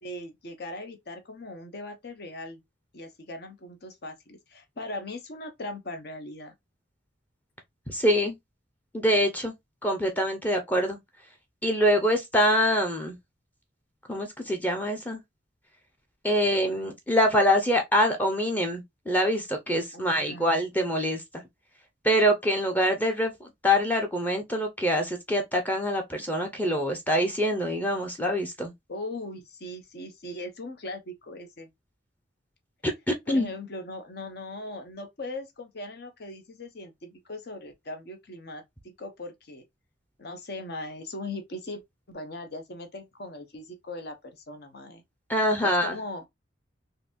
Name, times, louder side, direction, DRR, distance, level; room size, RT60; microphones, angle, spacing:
voice 1, 0.0-2.6 2.9-6.5 19.9-20.5 28.9-31.7 33.3-39.6 40.2-41.8 42.1-45.0 45.8-46.2, left 2 dB, 55° left, 0.8 m, -39 dB
voice 2, 7.9-8.3 8.9-9.5 9.8-11.0 11.6-13.2 14.1-15.2 16.2-21.2 22.0-28.7 32.8-33.5 45.3-46.0, equal, 10° left, 0.6 m, -25 dB
3.9 x 2.6 x 2.5 m
head